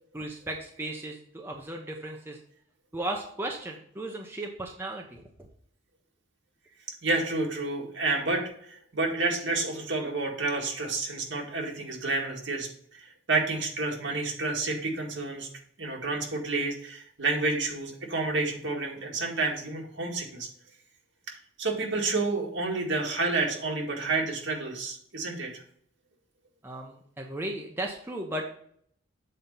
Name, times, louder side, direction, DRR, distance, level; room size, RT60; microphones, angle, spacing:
voice 1, 0.1-2.4 2.9-5.5 26.6-28.5, right 1 dB, 10° right, 1 dB, 0.7 m, -36 dB
voice 2, 7.0-15.5 15.8-20.5 21.3-25.6, right 3 dB, 65° right, 0 dB, 1.9 m, -30 dB
7.6 x 4.2 x 5.3 m, 0.64 s
head